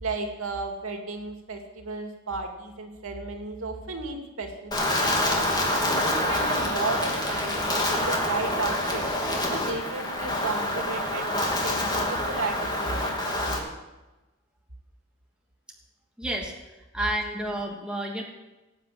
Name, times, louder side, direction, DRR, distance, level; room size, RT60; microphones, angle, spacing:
voice 1, 0.0-5.3 5.8-9.0 9.5-13.7, right 3 dB, 80° right, 3 dB, 2.5 m, -34 dB
Wind, 4.7-13.6, left 1 dB, 20° left, 2.8 m, -27 dB
voice 2, 16.2-16.5 16.9-18.2, right 1 dB, 5° right, -2 dB, 2.8 m, -30 dB
19.0 x 7.9 x 8.7 m, 1.1 s
head